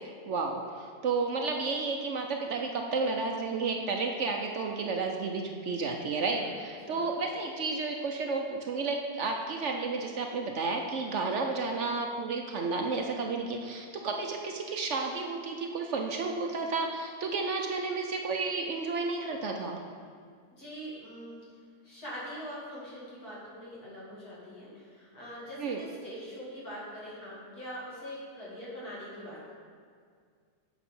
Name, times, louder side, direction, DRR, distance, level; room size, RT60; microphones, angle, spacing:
voice 1, 0.3-19.8 25.6-25.8, right 4 dB, 60° right, 3 dB, 0.8 m, -32 dB
voice 2, 20.6-21.4 21.8-29.5, equal, 80° left, -8 dB, 3.1 m, -43 dB
8.2 x 5.7 x 5.4 m, 2.1 s
omnidirectional pair, 1.6 m